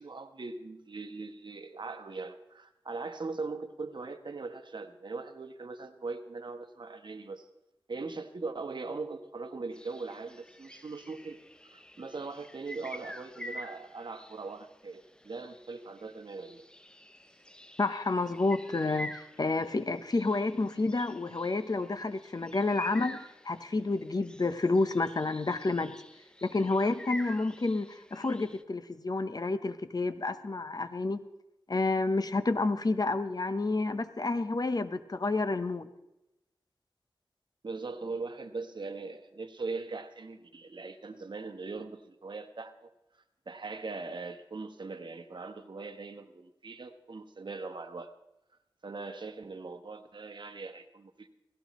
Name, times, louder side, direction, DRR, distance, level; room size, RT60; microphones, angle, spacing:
voice 1, 0.0-7.5 7.9-11.4 11.7-16.6 37.6-42.9 43.5-48.1 48.8-51.3, right 3 dB, 60° right, 8 dB, 1.1 m, -40 dB
sound 1, 9.7-28.6, equal, 10° left, 0.8 m, -48 dB
voice 2, 17.8-25.9 26.4-31.2 31.7-35.9, left 3 dB, 45° left, 11 dB, 0.9 m, -30 dB
17.0 x 16.0 x 3.1 m, 0.90 s
cardioid pair, 50°, 9 cm